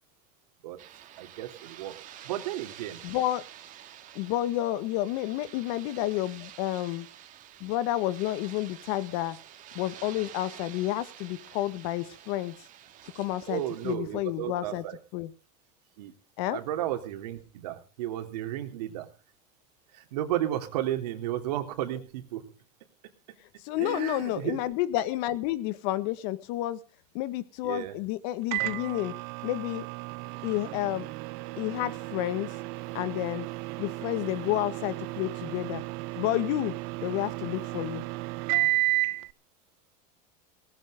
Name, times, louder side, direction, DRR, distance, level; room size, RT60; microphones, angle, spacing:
sound 1, 0.8-14.0, right 11 dB, 40° right, 2.5 m, -49 dB
voice 1, 1.2-1.9 2.2-3.0 13.5-15.0 16.0-16.1 16.5-19.1 19.9-22.5 23.8-24.6 27.6-27.9, right 13 dB, 85° right, 6 dB, 3.4 m, -33 dB
voice 2, 3.0-3.4 4.2-7.1 7.6-9.4 9.8-12.6 13.2-14.8 15.1-15.3 16.4-16.6 23.6-26.8 27.1-29.1 29.4-29.9 30.4-31.1 31.6-32.5 32.9-33.5 33.8-35.8 36.2-38.0, left 14 dB, 60° left, 14 dB, 1.7 m, -30 dB
Microwave oven, 28.5-39.3, right 21 dB, 60° right, 0.7 m, -33 dB
18.5 x 15.5 x 3.8 m, 0.34 s
supercardioid pair, 130°, 20 cm